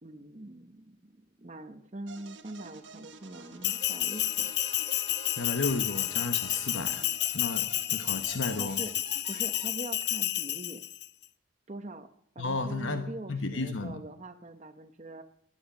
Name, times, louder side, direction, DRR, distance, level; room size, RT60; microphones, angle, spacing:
voice 1, 0.0-4.5 8.6-9.0 9.3-10.8 11.7-12.1 12.3-15.2, right 1 dB, 35° right, 6 dB, 0.8 m, -43 dB
sound 1, 2.1-9.7, right 5 dB, 70° right, 1.3 m, -50 dB
Trumpet, 2.6-7.1, equal, 20° left, 2.4 m, -54 dB
Bell, 3.6-11.1, left 14 dB, 55° left, 0.6 m, -31 dB
voice 2, 5.4-7.1 7.3-8.8 12.4-14.0, left 3 dB, 80° left, 8 dB, 1.1 m, -33 dB
17.0 x 10.0 x 5.9 m, 0.71 s
head